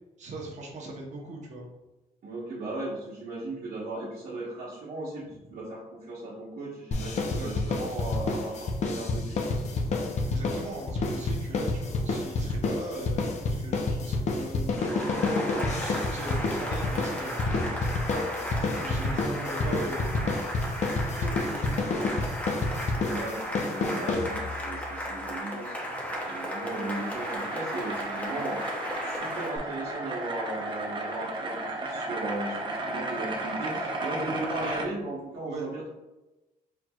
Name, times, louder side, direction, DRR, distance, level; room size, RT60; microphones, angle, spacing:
voice 1, 0.2-1.7 5.2-5.6 7.2-7.6 10.3-17.4 18.5-20.4 21.0-22.3 25.9-26.0 35.4-35.7, right 2 dB, 50° right, -1 dB, 1.1 m, -39 dB
voice 2, 2.2-9.6 23.0-25.7 26.2-28.6 29.0-35.9, right 2 dB, 70° right, -8 dB, 1.3 m, -37 dB
sound 1, 6.9-24.7, left 3 dB, 50° left, 0.7 m, -29 dB
Cheering / Applause, 14.8-29.6, equal, 10° left, 0.9 m, -35 dB
sound 2, 25.5-34.9, right 2 dB, 30° right, 0.7 m, -34 dB
4.5 x 4.3 x 2.4 m, 1.0 s
cardioid pair, 140°, 15 cm